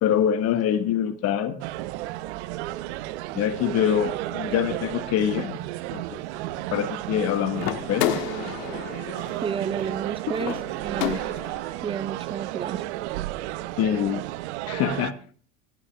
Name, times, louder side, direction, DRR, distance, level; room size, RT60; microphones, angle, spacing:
voice 1, 0.0-1.6 3.3-5.6 5.9-6.2 6.7-8.1 10.3-10.4 13.8-14.2 14.7-15.1, left 9 dB, 45° left, 11 dB, 1.2 m, -25 dB
sound 1, 1.6-15.1, right 16 dB, 75° right, 0.7 m, -33 dB
sound 2, 7.6-11.7, left 13 dB, 65° left, 1.4 m, -31 dB
voice 2, 9.4-10.6 10.8-11.2 11.8-12.8, right 7 dB, 15° right, 18 dB, 0.4 m, -31 dB
18.0 x 9.4 x 3.4 m, 0.42 s
supercardioid pair, 115°, 34 cm